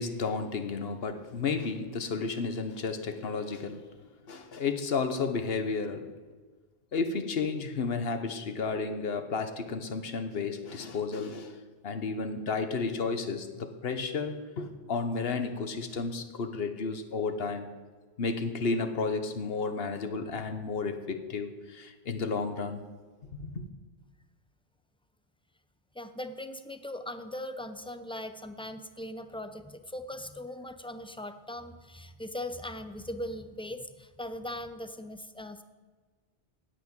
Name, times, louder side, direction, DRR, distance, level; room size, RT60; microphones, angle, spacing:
voice 1, 0.0-3.9 4.3-6.1 6.9-11.6 11.8-17.7 18.2-22.8 23.4-23.6, left 4 dB, 65° left, 8 dB, 1.2 m, -32 dB
voice 2, 25.9-35.6, left 1 dB, 5° left, 9 dB, 0.4 m, -40 dB
9.7 x 8.4 x 8.7 m, 1.4 s
omnidirectional pair, 1.1 m